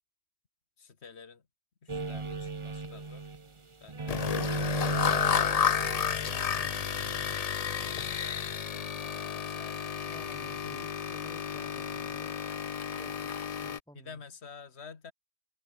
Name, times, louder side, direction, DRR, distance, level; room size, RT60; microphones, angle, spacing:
voice 1, 0.8-1.4 1.8-3.3 3.8-4.8 7.5-10.0 13.9-15.1, left 5 dB, 70° left, 2.0 m, -51 dB
sound 1, 1.9-3.6 3.9-7.3, right 3 dB, 25° right, 1.1 m, -36 dB
sound 2, 4.1-13.8, left 7 dB, 45° left, 0.6 m, -32 dB
voice 2, 10.1-12.4 12.8-14.2, equal, 5° left, 3.4 m, -54 dB
omnidirectional pair, 1.2 m